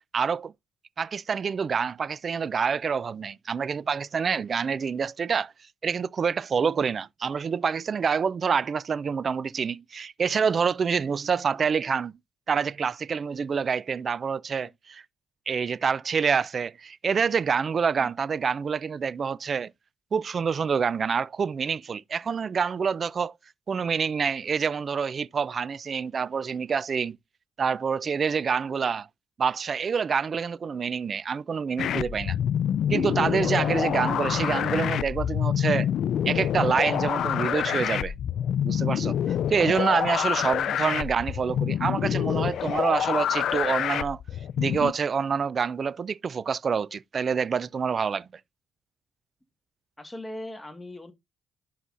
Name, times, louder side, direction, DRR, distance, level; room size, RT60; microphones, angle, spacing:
voice 1, 0.1-0.5 1.0-5.5 5.8-12.1 12.5-15.0 15.5-19.7 20.1-23.3 23.7-27.2 27.6-29.1 29.4-32.4 32.9-35.9 36.3-38.1 38.6-44.2 44.6-48.3, right 6 dB, 45° right, 0.3 m, -27 dB
sound 1, 31.8-44.9, left 9 dB, 70° left, 0.4 m, -27 dB
voice 2, 50.0-51.1, left 1 dB, 10° left, 1.6 m, -39 dB
11.0 x 5.7 x 2.5 m
cardioid pair, 90°, 0 cm